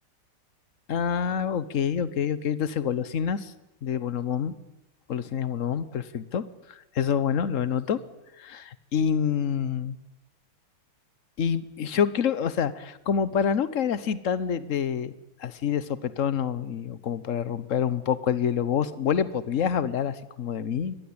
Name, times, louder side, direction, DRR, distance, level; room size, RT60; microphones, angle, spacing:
voice 1, 0.9-3.5 3.8-4.5 5.1-8.0 8.4-10.0 11.4-15.1 15.4-20.9, left 8 dB, 50° left, 15 dB, 1.0 m, -27 dB
23.5 x 19.5 x 8.8 m, 0.94 s
omnidirectional pair, 2.4 m